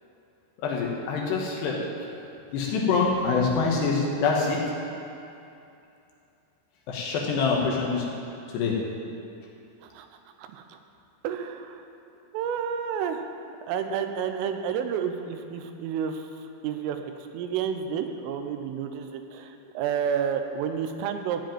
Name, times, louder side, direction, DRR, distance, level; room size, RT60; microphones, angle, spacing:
voice 1, 0.6-1.8 2.5-4.6 6.9-8.1 8.5-8.8, left 4 dB, 70° left, -2 dB, 3.0 m, -25 dB
voice 2, 11.2-11.8 12.3-13.2 13.7-16.2 16.6-21.4, right 8 dB, 90° right, 7 dB, 3.4 m, -30 dB
15.0 x 5.1 x 9.1 m, 2.7 s
omnidirectional pair, 5.7 m